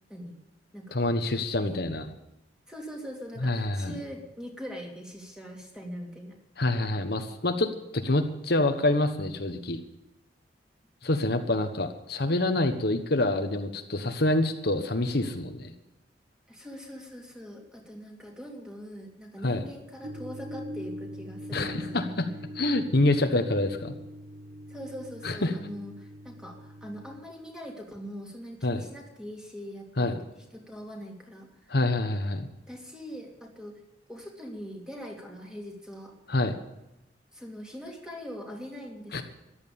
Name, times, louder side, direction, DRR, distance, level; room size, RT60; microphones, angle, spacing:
voice 1, 0.9-2.1 3.4-3.9 6.6-9.8 11.0-15.7 19.4-19.6 21.5-22.3 22.5-23.9 25.2-25.6 28.6-28.8 30.0-30.2 31.7-32.5 36.3-36.6 39.1-39.2, left 2 dB, 60° left, 6 dB, 1.2 m, -26 dB
voice 2, 2.7-6.4 16.5-22.2 24.7-30.2 30.5-31.7 32.7-33.8 34.1-36.1 37.3-39.2, equal, 5° right, 0 dB, 3.1 m, -42 dB
sound 1, 20.0-27.2, equal, 55° right, 1.5 m, -42 dB
14.5 x 11.5 x 7.0 m, 0.91 s
head